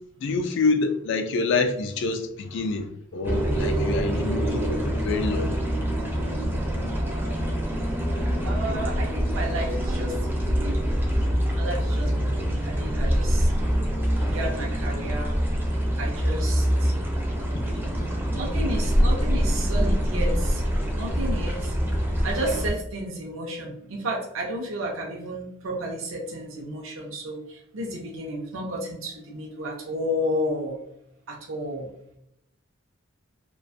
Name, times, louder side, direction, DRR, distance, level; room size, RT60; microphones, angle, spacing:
voice 1, 0.2-5.6, left 4 dB, 60° left, 0.3 m, -27 dB
sound 1, 3.2-22.7, equal, 10° right, 0.4 m, -25 dB
voice 2, 8.4-10.8 11.5-13.5 14.2-15.4 16.0-16.9 18.3-20.7 20.9-21.7 22.2-30.8 31.3-31.9, equal, 80° right, 0.5 m, -32 dB
2.4 x 2.2 x 2.5 m
head